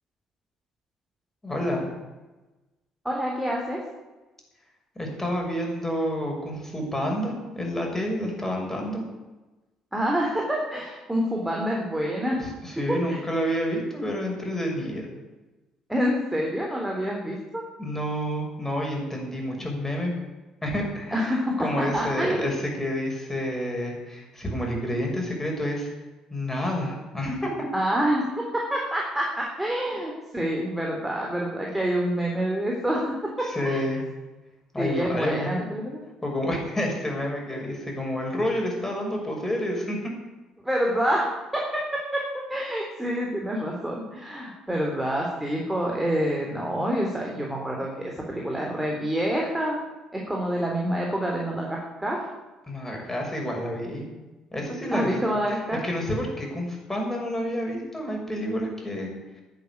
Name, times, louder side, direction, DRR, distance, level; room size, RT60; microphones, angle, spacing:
voice 1, 1.4-1.9 4.9-9.0 12.4-15.1 17.8-20.1 20.6-25.9 26.3-27.7 33.4-34.0 34.7-35.6 36.2-40.0 52.7-54.1 54.5-59.4, equal, 15° left, 0 dB, 6.4 m, -29 dB
voice 2, 3.0-3.8 9.9-12.4 12.7-13.2 15.9-17.6 21.1-21.7 21.9-22.6 27.7-33.8 34.8-36.0 40.6-41.3 41.5-49.8 50.1-52.2 54.9-55.8, equal, 5° right, -2 dB, 3.7 m, -27 dB
11.0 x 9.2 x 9.8 m, 1.1 s
figure-of-eight pair, 50°, 2 cm